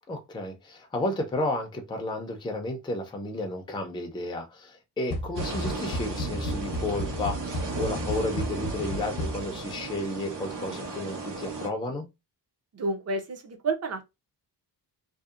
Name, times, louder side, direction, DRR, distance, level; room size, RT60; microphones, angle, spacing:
voice 1, 0.1-12.1, left 1 dB, 10° left, 0.4 m, -32 dB
sound 1, 5.1-9.7, left 1 dB, 75° left, 0.8 m, -33 dB
sound 2, 5.4-11.7, right 3 dB, 90° right, 1.1 m, -35 dB
voice 2, 12.7-14.0, right 3 dB, 40° right, 0.6 m, -30 dB
2.7 x 2.0 x 2.3 m
wide cardioid pair, 135°, 41 cm